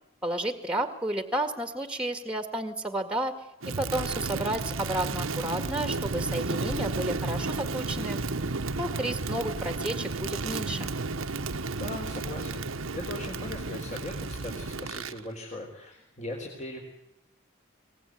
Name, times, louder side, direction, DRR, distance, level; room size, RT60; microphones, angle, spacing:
voice 1, 0.2-3.4 3.7-8.2 8.8-10.9, right 1 dB, 5° right, 9 dB, 1.9 m, -32 dB
Crackle, 3.6-15.2, right 3 dB, 85° right, 1.2 m, -32 dB
voice 2, 11.8-12.6 12.9-16.8, left 1 dB, 35° left, 0 dB, 4.0 m, -39 dB
24.0 x 19.0 x 9.4 m, 0.82 s
head